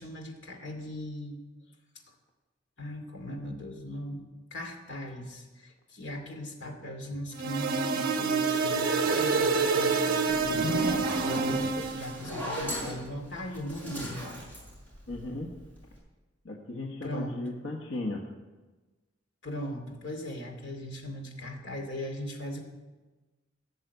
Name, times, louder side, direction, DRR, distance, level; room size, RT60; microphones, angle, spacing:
voice 1, 0.0-1.4 2.8-4.2 4.5-14.3 17.0-17.4 19.4-22.6, equal, 65° left, 3 dB, 2.5 m, -39 dB
sound 1, 7.4-12.1, right 4 dB, 50° right, 1.4 m, -27 dB
Zipper (clothing), 10.3-15.5, left 1 dB, 10° left, 5.5 m, -36 dB
voice 2, 15.1-15.5 16.4-18.2, left 2 dB, 90° left, 0 dB, 1.5 m, -36 dB
17.0 x 6.8 x 8.1 m, 1.2 s
head